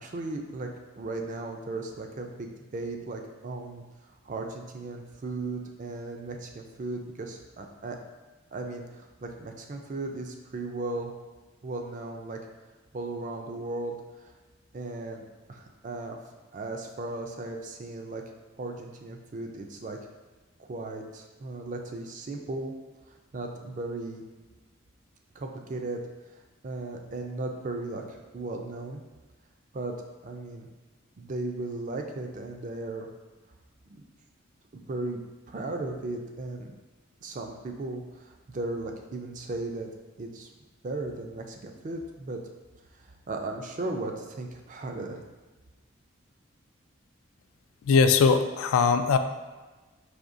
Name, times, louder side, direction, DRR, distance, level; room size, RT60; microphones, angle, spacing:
voice 1, 0.0-0.7 1.0-8.0 8.5-11.1 11.6-12.4 12.9-14.3 14.7-15.2 15.5-16.2 16.5-18.2 18.6-20.0 20.6-22.7 23.3-24.2 25.3-26.0 26.6-29.0 29.7-30.0 30.2-30.7 31.2-33.1 33.9-34.0 34.7-35.2 35.5-36.7 37.2-39.9 40.2-40.5 40.8-42.4 43.0-45.2, right 2 dB, 40° right, 3 dB, 0.4 m, -36 dB
voice 2, 47.9-49.2, left 5 dB, 85° left, 9 dB, 0.3 m, -20 dB
4.9 x 2.7 x 2.6 m, 1.2 s
head